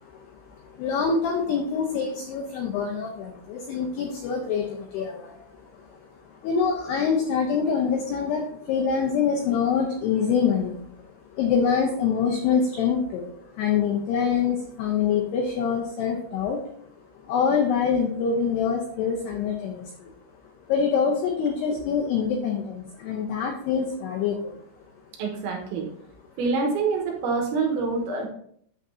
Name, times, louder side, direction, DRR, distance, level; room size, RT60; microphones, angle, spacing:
voice 1, 0.0-6.0 6.3-10.8 11.3-16.9 17.2-20.1 20.7-24.6, left 6 dB, 85° left, 2 dB, 2.3 m, -25 dB
voice 2, 25.2-25.9 26.4-28.3, right 4 dB, 75° right, 1 dB, 3.2 m, -26 dB
9.1 x 6.7 x 2.7 m, 0.65 s
omnidirectional pair, 5.9 m